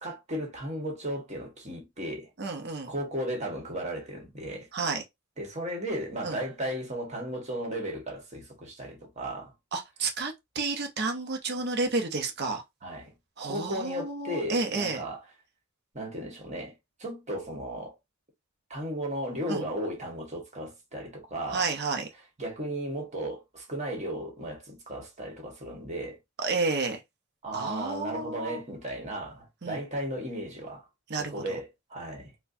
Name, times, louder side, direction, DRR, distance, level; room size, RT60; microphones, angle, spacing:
voice 1, 0.0-2.3 2.9-4.7 5.4-9.5 12.8-13.1 13.4-15.2 15.9-16.7 17.0-18.0 18.7-21.7 22.4-26.2 27.4-30.9 31.2-32.3, right 1 dB, 35° right, 1.4 m, -35 dB
voice 2, 2.4-2.9 4.7-5.0 6.2-6.4 9.7-12.6 13.4-15.0 19.5-19.7 21.5-22.1 26.4-27.0 27.5-28.6 29.6-29.8 31.1-31.4, right 3 dB, 55° right, 0.7 m, -31 dB
4.4 x 2.2 x 2.6 m
head